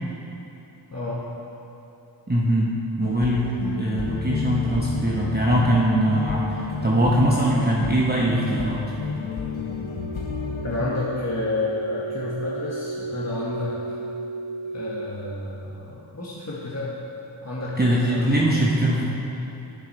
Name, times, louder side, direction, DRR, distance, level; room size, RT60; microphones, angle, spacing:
voice 1, 0.9-1.2 10.6-13.7 14.7-17.0 17.4-18.5 18.9-19.0, left 2 dB, 35° left, -7 dB, 1.3 m, -30 dB
voice 2, 2.3-2.7 3.0-3.5 3.8-8.8 17.8-19.0, right 1 dB, 20° right, -5 dB, 1.0 m, -21 dB
sound 1, 3.0-10.9, left 4 dB, 85° left, 0.9 m, -30 dB
sound 2, 9.5-15.1, right 3 dB, 85° right, 0.9 m, -34 dB
9.2 x 7.0 x 4.2 m, 2.9 s
wide cardioid pair, 40°, 47 cm